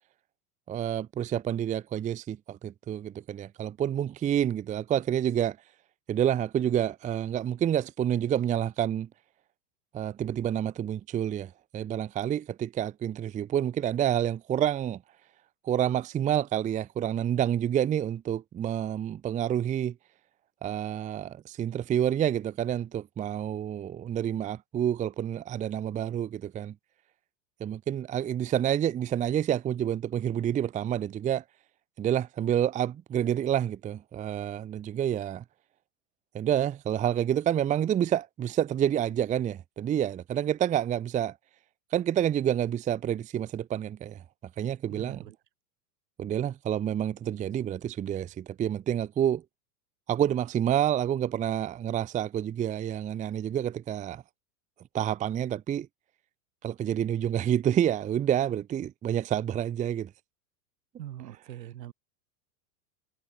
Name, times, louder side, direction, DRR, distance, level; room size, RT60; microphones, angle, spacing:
voice 1, 0.7-5.6 6.1-9.1 9.9-15.0 15.6-19.9 20.6-26.7 27.6-31.4 32.0-35.4 36.3-41.4 41.9-44.2 44.6-45.2 46.2-49.4 50.1-54.2 54.9-55.9 56.6-60.1, right 10 dB, 15° right, 0.6 m, -28 dB
voice 2, 44.9-45.4 61.0-61.9, right 12 dB, 80° right, 4.1 m, -42 dB
hypercardioid pair, 120°, 49 cm